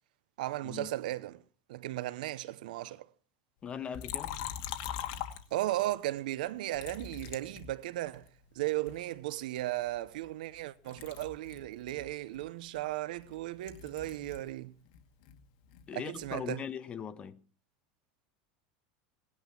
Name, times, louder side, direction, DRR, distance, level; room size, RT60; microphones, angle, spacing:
voice 1, 0.4-1.4 1.7-3.0 5.5-8.2 8.6-14.7 15.9-16.6, right 15 dB, 85° right, 0.8 m, -36 dB
voice 2, 3.6-4.4 15.9-17.4, left 8 dB, 25° left, 1.3 m, -40 dB
Liquid, 3.9-5.9 6.7-8.3 8.9-10.6 10.9-14.5 14.8-16.5, left 10 dB, 60° left, 2.2 m, -43 dB
18.5 x 11.0 x 6.0 m
supercardioid pair, 135°, 4 cm